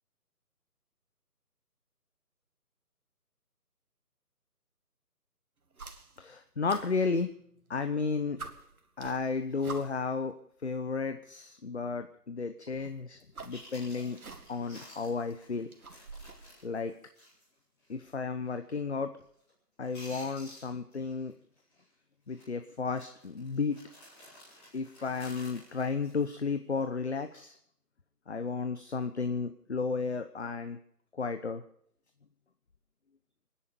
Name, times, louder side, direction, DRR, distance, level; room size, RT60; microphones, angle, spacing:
sound 1, 5.7-6.3 6.7-7.7 8.1-8.2 8.4-10.2 11.2-11.3 12.7-14.7 15.1-16.5, right 3 dB, 60° right, 2.2 m, -47 dB
voice 1, 6.2-7.3 7.7-8.4 9.0-10.4 10.6-14.2 14.5-15.7 16.6-16.9 17.9-19.1 19.8-21.3 22.3-23.8 24.7-27.6 28.3-30.8 31.2-31.6, left 4 dB, 45° left, 9 dB, 0.9 m, -33 dB
Chewing mastication, 13.2-13.3 13.5-17.5 17.8-17.9 18.5-18.8 19.0-19.5 19.8-21.3 21.6-21.8 22.3-22.5 22.9-26.8 27.2-27.5, left 1 dB, 10° left, 3.5 m, -53 dB
25.5 x 10.5 x 5.1 m, 0.65 s
hypercardioid pair, 175°, 48 cm